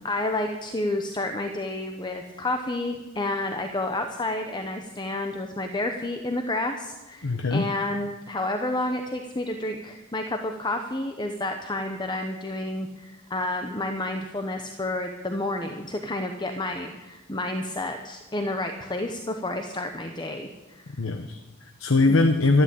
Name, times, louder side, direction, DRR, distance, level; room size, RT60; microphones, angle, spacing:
voice 1, 0.0-21.0, left 2 dB, 20° left, 5 dB, 0.9 m, -30 dB
voice 2, 7.2-7.7 20.9-22.6, left 3 dB, 65° left, 6 dB, 1.0 m, -22 dB
13.0 x 12.0 x 8.5 m, 1.1 s
head